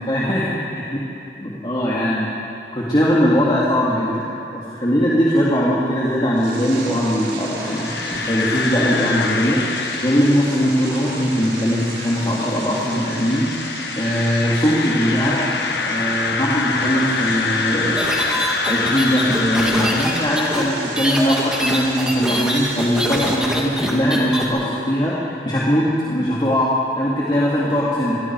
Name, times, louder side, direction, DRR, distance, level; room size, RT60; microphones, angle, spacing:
voice 1, 0.1-0.4 0.9-1.0 1.4-2.3 2.7-9.6 10.0-15.4 15.9-18.0 18.6-25.1 25.4-26.7 27.0-28.2, equal, 25° left, -7 dB, 2.8 m, -20 dB
sound 1, 6.3-23.3, right 3 dB, 85° right, 4.8 m, -36 dB
sound 2, 7.4-21.4, left 4 dB, 65° left, 1.3 m, -26 dB
sound 3, 18.0-24.4, equal, 5° right, 2.6 m, -24 dB
27.0 x 22.0 x 4.9 m, 2.6 s
head